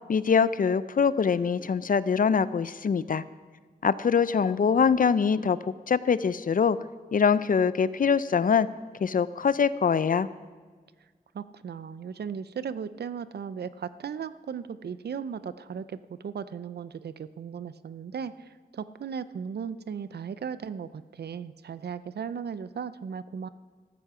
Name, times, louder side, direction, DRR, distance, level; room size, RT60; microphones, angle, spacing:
voice 1, 0.1-3.2 3.8-6.8 7.1-8.7 9.0-10.3, left 6 dB, 55° left, 16 dB, 0.5 m, -23 dB
voice 2, 11.3-16.0 16.2-23.5, right 7 dB, 90° right, 15 dB, 0.5 m, -36 dB
13.5 x 13.5 x 4.9 m, 1.5 s
wide cardioid pair, 90°, 16 cm